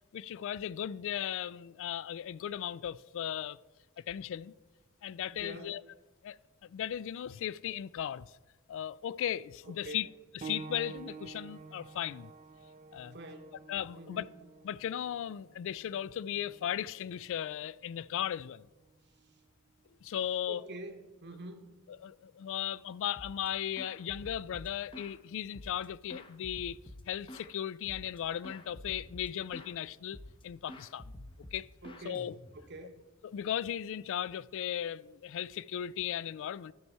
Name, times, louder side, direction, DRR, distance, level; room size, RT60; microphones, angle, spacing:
voice 1, 0.1-3.6 4.0-4.5 5.0-5.8 6.2-8.3 8.7-10.1 10.4-12.3 12.9-13.2 13.7-14.3 14.6-18.7 20.0-20.6 22.0-26.8 27.1-31.1 31.5-31.7 32.0-32.3 33.2-36.7, left 10 dB, 65° left, 0.3 m, -37 dB
voice 2, 5.3-5.8 9.6-10.1 13.1-13.5 14.0-14.4 19.2-19.4 20.5-21.7 31.8-33.0, right 2 dB, 55° right, 1.0 m, -46 dB
sound 1, 10.4-20.6 21.6-21.7 22.4-22.5, right 5 dB, 35° right, 0.4 m, -50 dB
sound 2, 23.2-23.5 23.8-25.2 25.5-27.5 27.9-28.2 28.4-29.8 30.1-30.4 30.7-32.8, left 1 dB, 25° left, 0.7 m, -48 dB
12.5 x 4.6 x 5.5 m
head